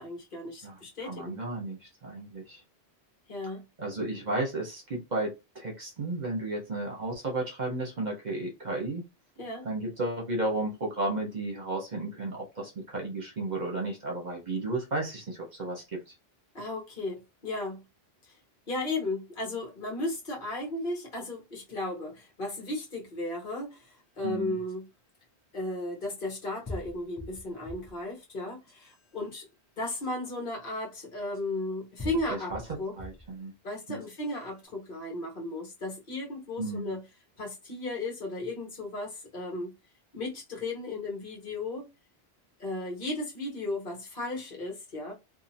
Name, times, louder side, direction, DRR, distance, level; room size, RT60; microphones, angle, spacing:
voice 1, 0.0-1.4 3.3-3.6 9.4-9.7 16.5-17.8 18.7-24.9 25.5-29.4 29.8-32.5 32.8-32.9 33.6-37.0 37.4-39.7 40.1-41.9 42.6-45.1, left 2 dB, 55° left, 1.3 m, -35 dB
voice 2, 0.6-2.6 3.8-9.0 9.6-16.1 24.2-24.6 32.3-32.6 32.9-33.5 33.9-34.0 36.6-36.9, right 2 dB, 45° right, 1.1 m, -33 dB
sound 1, 24.7-24.8 26.0-26.1 26.7-28.0 28.5-29.0 30.0-30.1 31.3-31.4 32.0-33.3 33.8-34.4, left 1 dB, 15° left, 0.7 m, -42 dB
2.7 x 2.6 x 2.6 m
omnidirectional pair, 1.1 m